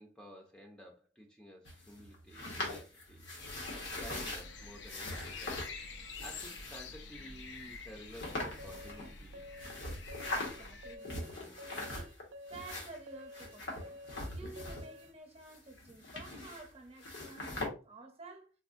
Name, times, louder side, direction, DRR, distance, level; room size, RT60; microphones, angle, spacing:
voice 1, 0.0-5.6 6.2-9.4, equal, 5° left, 0.5 m, -52 dB
sound 1, 1.7-4.4 4.9-5.7 6.1-6.9 7.6-7.7 8.1-9.2 9.6-10.7 11.0-12.2 12.5-15.1 15.4-16.7 17.0-17.7, left 2 dB, 90° left, 1.1 m, -41 dB
sound 2, 3.4-11.0, left 4 dB, 65° left, 0.4 m, -48 dB
sound 3, 8.6-15.1, left 1 dB, 70° right, 0.4 m, -51 dB
voice 2, 10.3-14.0 14.3-18.5, right 3 dB, 35° right, 0.7 m, -52 dB
4.1 x 2.1 x 2.5 m
head